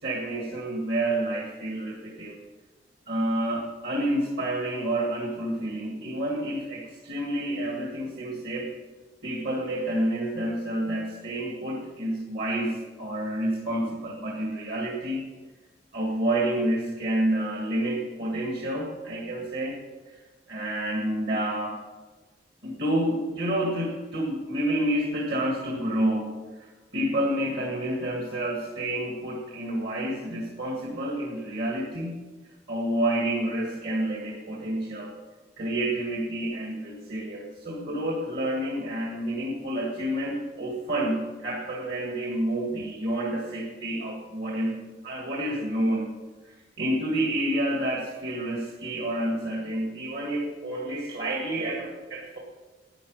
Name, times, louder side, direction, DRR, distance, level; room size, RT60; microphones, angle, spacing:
voice 1, 0.0-2.4 3.1-8.7 9.2-15.3 15.9-19.8 20.1-20.2 20.5-21.8 22.6-32.2 32.7-35.1 35.6-46.1 46.4-52.4, right 1 dB, 65° right, -1 dB, 2.1 m, -29 dB
11.5 x 9.7 x 6.6 m, 1.3 s
head